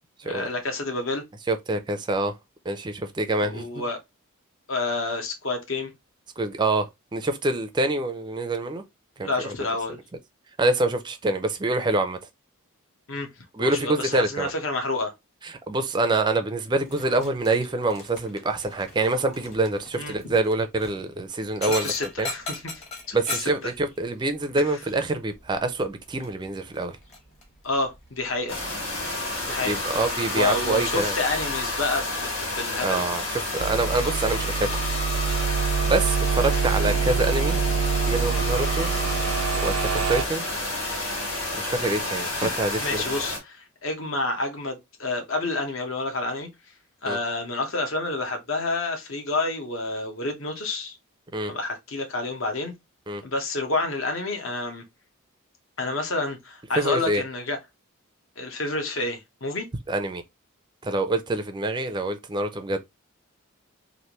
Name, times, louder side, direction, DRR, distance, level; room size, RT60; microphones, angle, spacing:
voice 1, 0.2-1.2 3.4-4.0 4.7-5.9 9.2-10.0 13.1-13.3 13.6-15.1 19.9-20.1 21.6-22.4 23.1-23.7 27.6-28.6 29.5-29.7 30.3-33.0 36.8-37.0 42.4-42.5 42.8-46.5 47.0-51.0 51.5-52.7 53.2-54.8 55.8-57.6 58.4-59.7, left 2 dB, 60° left, 0.9 m, -29 dB
voice 2, 1.5-2.3 2.7-3.8 6.4-8.8 9.2-9.5 10.6-12.2 13.5-14.5 15.4-21.9 22.2-22.3 23.1-27.0 29.6-31.2 32.8-34.7 35.9-37.6 38.1-38.9 39.6-40.4 41.5-43.0 47.1-47.2 51.3-51.5 53.1-53.2 56.8-57.2 59.9-60.2 60.8-62.8, right 2 dB, 20° right, 0.4 m, -26 dB
Dog, 16.8-33.4, left 2 dB, 30° left, 1.1 m, -42 dB
sound 1, 28.5-43.4, left 2 dB, 80° left, 1.7 m, -30 dB
sound 2, 33.6-40.2, right 6 dB, 75° right, 0.5 m, -25 dB
3.3 x 2.5 x 2.9 m
head